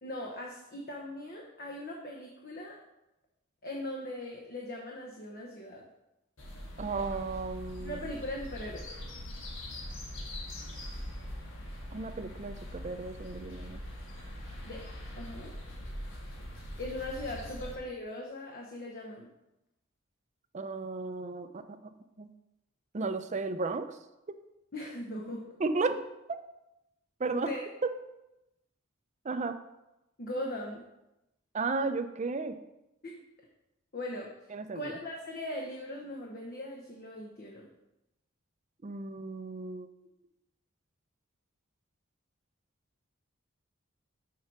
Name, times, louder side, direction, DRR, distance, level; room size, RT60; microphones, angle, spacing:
voice 1, 0.0-2.8 3.6-5.9 7.8-8.9 14.6-14.8 15.2-15.5 16.8-19.3 24.7-25.4 25.8-25.9 27.3-27.6 30.2-30.8 33.0-33.1 33.9-34.3 34.7-37.7, left 1 dB, 45° left, -1 dB, 0.9 m, -39 dB
sound 1, 6.4-17.8, left 1 dB, 70° left, 1.5 m, -42 dB
voice 2, 6.8-8.0 11.9-13.8 20.5-21.9 22.2-22.3 22.9-24.0 25.6-25.9 27.2-27.5 27.8-27.9 29.2-29.6 31.5-32.6 34.5-35.0 38.8-39.9, right 3 dB, 35° right, 9 dB, 0.5 m, -34 dB
6.5 x 4.6 x 5.9 m, 0.93 s
head